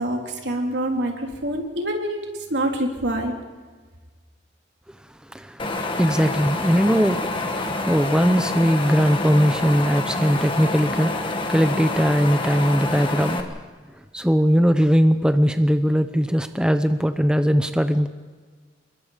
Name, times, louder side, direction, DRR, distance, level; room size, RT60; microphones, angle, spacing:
voice 1, 0.0-3.3, right 1 dB, 70° right, 3.8 m, -26 dB
Wind, 5.6-13.4, left 2 dB, 30° left, 2.0 m, -27 dB
voice 2, 6.0-7.3 7.9-13.6 14.1-18.1, equal, 5° right, 0.8 m, -20 dB
28.0 x 22.5 x 5.2 m
head